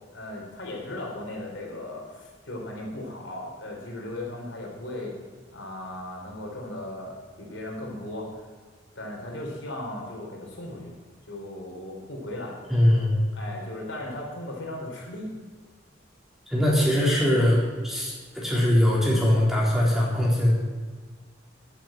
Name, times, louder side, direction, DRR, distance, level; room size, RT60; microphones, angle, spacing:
voice 1, 0.1-5.2 5.5-8.4 9.0-10.9 11.3-12.6 13.3-15.3, left 1 dB, 75° left, -1 dB, 4.1 m, -37 dB
voice 2, 12.7-13.1 16.5-20.6, left 1 dB, ahead, -5 dB, 3.8 m, -21 dB
11.5 x 9.9 x 7.5 m, 1.4 s
head